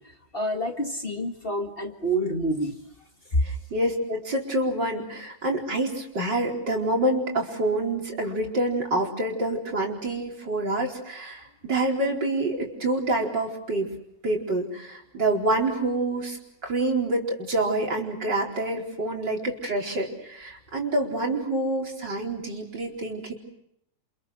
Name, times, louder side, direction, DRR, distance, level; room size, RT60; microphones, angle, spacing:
voice 1, 0.0-2.8 3.3-3.4, equal, 30° left, 4 dB, 2.1 m, -27 dB
voice 2, 3.4-13.9 14.2-16.4 16.6-23.3, right 2 dB, 70° right, 0 dB, 5.1 m, -27 dB
29.5 x 27.0 x 6.4 m, 0.76 s
omnidirectional pair, 2.0 m